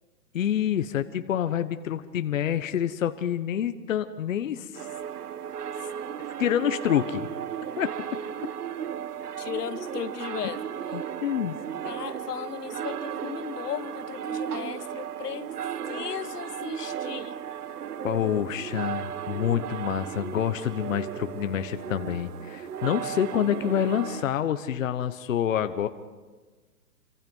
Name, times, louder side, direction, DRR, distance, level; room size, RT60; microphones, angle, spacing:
voice 1, 0.3-4.9 6.4-7.3 7.8-7.9 10.9-11.6 18.0-25.9, left 9 dB, 55° left, 10 dB, 1.1 m, -27 dB
sound 1, 4.7-24.2, right 9 dB, 70° right, 1.4 m, -35 dB
voice 2, 9.4-10.6 11.8-15.5 15.9-17.4, left 9 dB, 70° left, 14 dB, 1.4 m, -36 dB
29.0 x 25.0 x 5.5 m, 1.3 s
hypercardioid pair, 170°, 48 cm